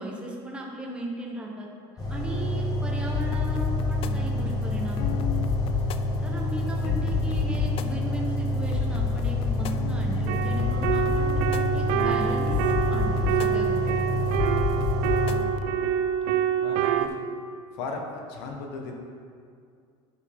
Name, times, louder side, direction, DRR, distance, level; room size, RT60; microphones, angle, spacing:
voice 1, 0.0-1.7 2.1-5.2 6.2-11.4 11.7-14.3, right 1 dB, 5° right, -2 dB, 1.2 m, -36 dB
sound 1, 2.0-15.4, equal, 25° left, 1.9 m, -28 dB
sound 2, 3.1-15.5, left 11 dB, 40° left, 0.4 m, -31 dB
sound 3, 10.3-17.1, right 9 dB, 70° right, 0.5 m, -26 dB
voice 2, 16.6-17.1 17.7-19.0, left 3 dB, 80° left, 1 dB, 1.4 m, -36 dB
11.0 x 5.4 x 3.7 m, 2.2 s
supercardioid pair, 120°, 14 cm